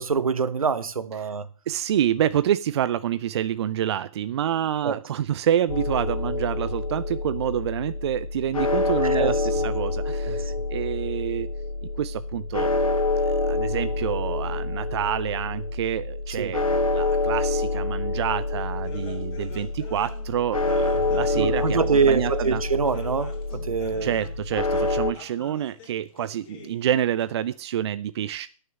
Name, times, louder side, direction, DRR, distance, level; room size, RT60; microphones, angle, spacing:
voice 1, 0.0-1.5 4.8-5.0 9.0-9.6 10.3-10.4 16.4-16.5 21.3-24.2, right 5 dB, 80° right, 1.1 m, -25 dB
voice 2, 1.7-11.5 12.0-12.7 13.2-22.6 24.0-28.5, right 10 dB, 50° right, 0.5 m, -28 dB
sound 1, 5.7-25.1, left 3 dB, 80° left, 2.3 m, -27 dB
sound 2, 18.8-27.6, left 4 dB, 40° left, 3.3 m, -45 dB
10.5 x 6.6 x 6.8 m
figure-of-eight pair, 130°, 18 cm